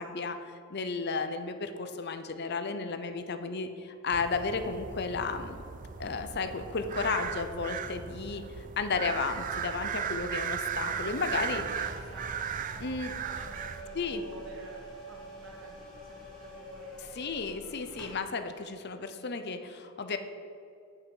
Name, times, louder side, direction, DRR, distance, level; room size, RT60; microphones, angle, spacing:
voice 1, 0.0-5.6 6.0-11.6 12.8-13.2 13.9-14.2 17.2-20.2, left 4 dB, 55° left, 9 dB, 0.7 m, -33 dB
sound 1, 4.1-13.8, right 7 dB, 40° right, 0.4 m, -37 dB
voice 2, 10.8-17.2, right 1 dB, 65° right, -1 dB, 2.2 m, -50 dB
sound 2, 10.9-18.2, equal, ahead, 2.7 m, -48 dB
9.3 x 5.7 x 7.9 m, 2.4 s
head